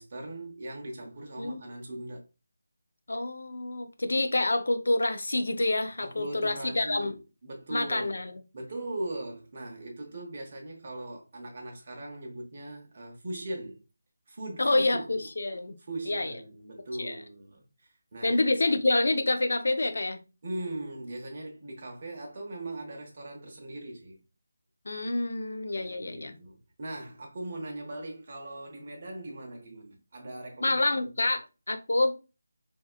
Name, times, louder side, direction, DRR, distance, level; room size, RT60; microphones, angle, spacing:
voice 1, 0.0-2.2 6.0-8.2 8.5-13.8 14.3-15.3 15.9-18.4 20.4-24.2 25.7-30.8 31.2-31.3, right 1 dB, 40° right, 0.7 m, -40 dB
voice 2, 3.1-7.1 7.7-8.4 14.6-15.8 16.1-16.4 17.0-17.2 18.2-20.2 24.9-26.4 30.6-32.1, left 2 dB, 70° left, 0.4 m, -27 dB
2.8 x 2.3 x 2.4 m
figure-of-eight pair, 165°, 0 cm